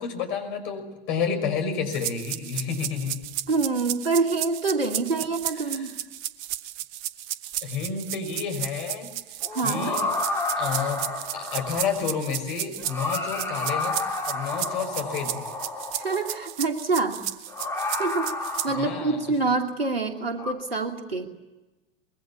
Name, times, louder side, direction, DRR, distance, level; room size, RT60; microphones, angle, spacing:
voice 1, 0.0-3.2 5.6-5.9 7.6-9.1 9.6-10.1 10.6-11.0 11.3-14.0 14.3-15.5 18.7-19.2, left 6 dB, 55° left, 6 dB, 6.0 m, -30 dB
sound 1, 1.9-18.7, right 13 dB, 50° right, 1.1 m, -34 dB
voice 2, 3.5-5.9 9.5-10.0 16.0-17.2 18.0-18.3 18.6-21.3, right 3 dB, 85° right, 5 dB, 2.7 m, -26 dB
sound 2, 9.4-12.1 12.8-16.5 17.5-19.3 20.4-20.5, left 2 dB, 10° left, 5.9 m, -31 dB
24.5 x 21.5 x 8.5 m, 1.1 s
figure-of-eight pair, 80°, 29 cm